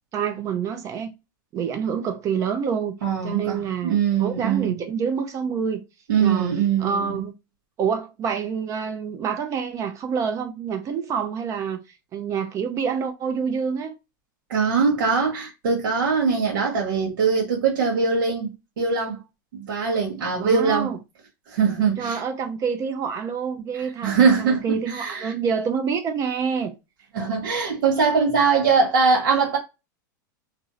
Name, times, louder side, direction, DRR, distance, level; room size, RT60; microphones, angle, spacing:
voice 1, 0.1-1.1 1.5-3.0 3.2-5.8 6.2-6.5 6.8-7.3 7.8-11.8 12.1-13.9 20.4-21.0 22.0-26.7, right 6 dB, 30° right, 0.5 m, -27 dB
voice 2, 3.0-4.8 6.1-7.2 14.5-19.2 19.5-20.9 21.5-22.2 23.7-24.6 24.9-25.3 27.1-29.6, right 5 dB, 85° right, 1.0 m, -22 dB
2.5 x 2.0 x 2.6 m
supercardioid pair, 135°, 11 cm